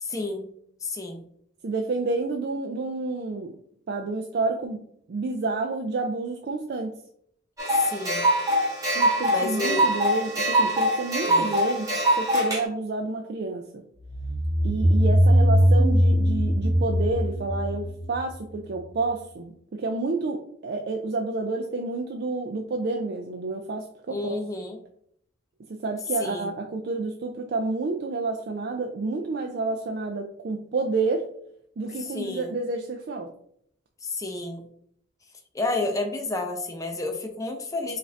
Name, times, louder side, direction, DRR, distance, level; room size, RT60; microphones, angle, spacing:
voice 1, 0.0-0.5 0.8-1.2 7.7-8.3 9.3-9.9 11.3-11.5 24.1-24.8 26.2-26.5 32.0-32.5 34.0-34.6 35.5-38.0, left 2 dB, 15° left, 3 dB, 0.5 m, -30 dB
voice 2, 1.6-3.5 3.9-4.8 5.1-7.0 8.9-13.8 14.6-24.4 25.7-31.3 31.8-33.3, right 3 dB, 55° right, 3 dB, 0.4 m, -29 dB
sound 1, 7.6-12.6, right 1 dB, 15° right, 1.3 m, -23 dB
sound 2, 14.1-18.7, equal, 35° right, 1.7 m, -21 dB
5.0 x 2.5 x 3.3 m, 0.67 s
head